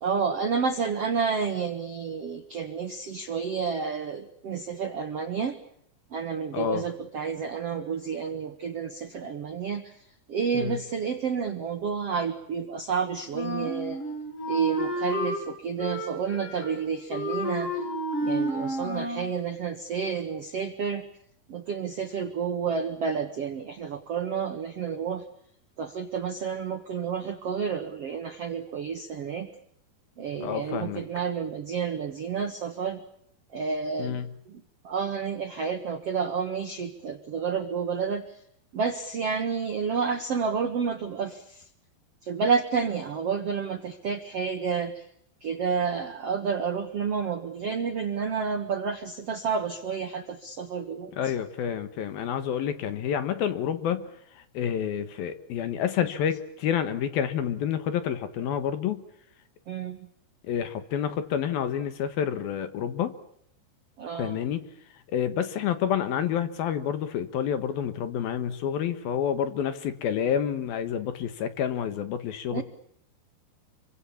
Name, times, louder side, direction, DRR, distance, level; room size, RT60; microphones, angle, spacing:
voice 1, 0.0-5.6 6.1-9.8 10.3-14.0 14.5-17.7 18.2-21.0 21.5-25.2 25.8-29.5 30.2-33.0 33.5-34.2 34.5-38.2 38.7-41.6 42.2-45.0 45.4-51.1 59.7-60.0 64.0-64.4 72.5-72.6, right 6 dB, 65° right, 7 dB, 1.5 m, -30 dB
voice 2, 6.5-6.9 10.5-10.8 30.4-31.0 34.0-34.3 51.1-54.1 54.5-59.0 60.5-63.1 64.2-64.6 65.1-72.6, left 9 dB, 65° left, 11 dB, 2.9 m, -28 dB
Wind instrument woodwind instrument, 13.3-15.4 15.8-16.8 17.1-19.3, equal, 30° left, 7.2 m, -31 dB
28.5 x 24.0 x 7.1 m, 0.70 s
omnidirectional pair, 5.1 m